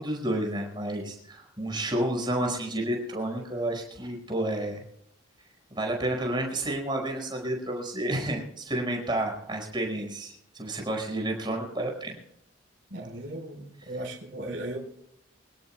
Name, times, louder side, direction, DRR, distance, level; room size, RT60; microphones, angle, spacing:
voice 1, 0.0-4.8 5.7-12.2, right 1 dB, 20° right, 1 dB, 5.0 m, -30 dB
voice 2, 12.9-14.8, right 1 dB, 55° right, -3 dB, 4.2 m, -37 dB
25.5 x 17.0 x 2.2 m, 0.73 s
head